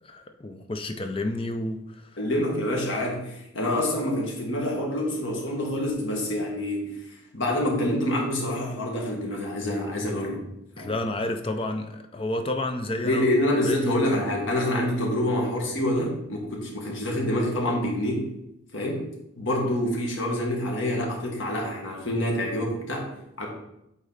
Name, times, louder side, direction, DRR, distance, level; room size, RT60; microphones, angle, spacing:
voice 1, 0.0-2.2 10.8-13.3 13.6-14.0, left 1 dB, 25° left, 6 dB, 0.5 m, -30 dB
voice 2, 2.2-10.5 10.8-10.9 13.0-18.3 18.7-19.1 19.4-23.5, left 1 dB, 65° left, -1 dB, 1.7 m, -27 dB
8.3 x 4.0 x 4.0 m, 0.82 s
head